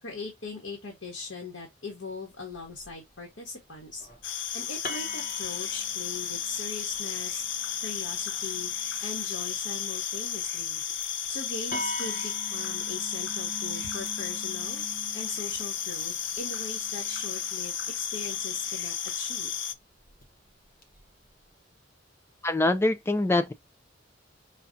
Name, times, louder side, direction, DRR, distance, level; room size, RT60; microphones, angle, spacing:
voice 1, 0.0-4.1 4.5-7.4 7.8-8.7 9.0-10.8 11.3-14.8 15.1-19.5, left 3 dB, 90° left, 1.4 m, -40 dB
sound 1, 2.5-3.0 3.8-4.2 4.8-9.2 10.8-11.0 11.3-11.4 11.7-18.8 20.0-20.2 20.8-21.3, equal, 50° left, 1.1 m, -43 dB
sound 2, 4.2-19.7, left 8 dB, 70° left, 0.5 m, -33 dB
voice 2, 22.4-23.5, left 2 dB, 15° left, 0.3 m, -24 dB
5.6 x 2.4 x 2.6 m
head